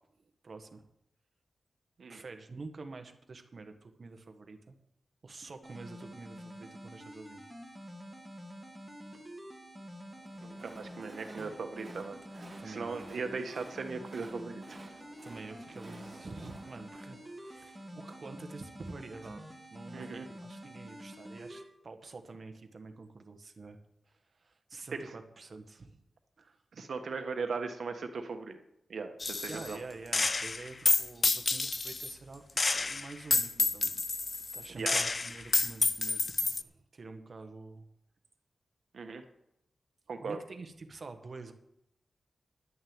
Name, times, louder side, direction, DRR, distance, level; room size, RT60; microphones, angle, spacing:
voice 1, 0.2-0.9 2.1-4.8 5.2-7.4 12.6-13.0 15.2-23.8 24.1-26.0 26.4-26.6 29.5-32.4 32.7-34.0 34.3-37.9 40.2-41.5, right 3 dB, 45° right, 6 dB, 1.3 m, -47 dB
sound 1, 5.6-21.6, equal, ahead, 1.8 m, -48 dB
Train, 10.1-18.2, right 2 dB, 25° right, 2.2 m, -54 dB
voice 2, 10.4-14.6 19.9-20.3 24.9-25.0 26.7-28.6 28.9-29.8 34.7-35.0 38.9-39.2 40.1-40.4, right 4 dB, 65° right, 6 dB, 1.4 m, -38 dB
Gunshot gunfire, 29.2-29.8 30.1-32.1 32.6-36.6, left 3 dB, 35° left, 0.4 m, -29 dB
11.0 x 6.4 x 8.8 m, 0.80 s
wide cardioid pair, 150°, 0 cm